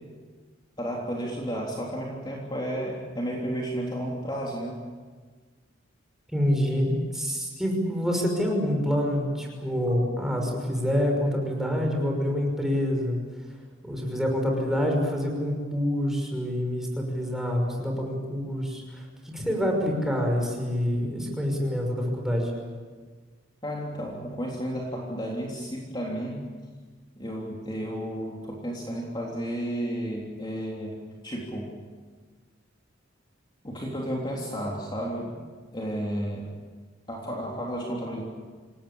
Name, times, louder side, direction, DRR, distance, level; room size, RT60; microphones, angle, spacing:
voice 1, 0.8-4.8 23.6-26.4 27.2-31.8 33.6-35.3 35.7-36.5 37.1-38.2, equal, 25° left, -2 dB, 3.5 m, -32 dB
voice 2, 6.3-13.2 13.8-22.5, equal, ahead, 1 dB, 5.8 m, -27 dB
27.5 x 18.5 x 8.7 m, 1.5 s
head